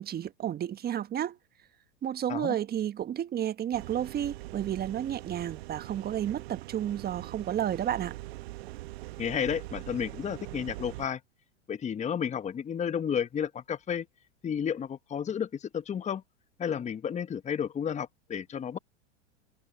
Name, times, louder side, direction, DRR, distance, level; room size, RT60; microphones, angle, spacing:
voice 1, 0.0-1.4 2.0-8.2, right 10 dB, 25° right, 1.4 m, -31 dB
sound 1, 3.7-11.1, right 19 dB, 60° right, 1.3 m, -42 dB
voice 2, 9.2-11.2 11.7-14.1 14.4-16.2 16.6-18.8, left 8 dB, 20° left, 1.2 m, -32 dB
hypercardioid pair, 100°, 35 cm